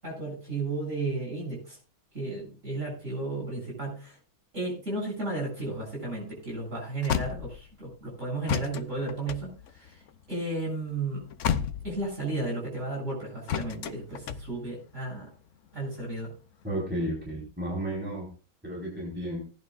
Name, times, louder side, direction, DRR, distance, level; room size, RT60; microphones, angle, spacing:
voice 1, 0.0-1.8 2.1-4.2 4.5-10.0 10.3-11.2 11.8-15.3 15.7-16.3, right 2 dB, 35° right, -3 dB, 8.2 m, -33 dB
sound 1, 5.6-8.0 8.5-12.4 13.5-15.1 15.7-16.6, left 8 dB, 75° left, 0.7 m, -33 dB
voice 2, 16.6-18.3 18.6-19.4, right 1 dB, 5° right, -4 dB, 4.6 m, -32 dB
19.0 x 11.0 x 2.5 m, 0.36 s
omnidirectional pair, 2.2 m